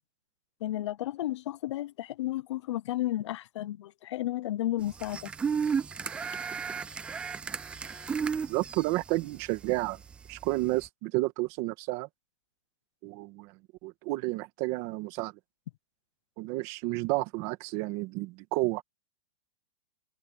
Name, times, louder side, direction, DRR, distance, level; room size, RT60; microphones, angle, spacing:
voice 1, 0.6-5.3, left 14 dB, 50° left, 0.8 m, -33 dB
sound 1, 4.8-10.8, right 6 dB, 5° right, 0.4 m, -33 dB
voice 2, 8.5-10.0 10.3-12.1 13.0-13.5 13.8-15.3 16.4-18.8, right 20 dB, 30° right, 1.9 m, -31 dB
supercardioid pair, 170°, 19 cm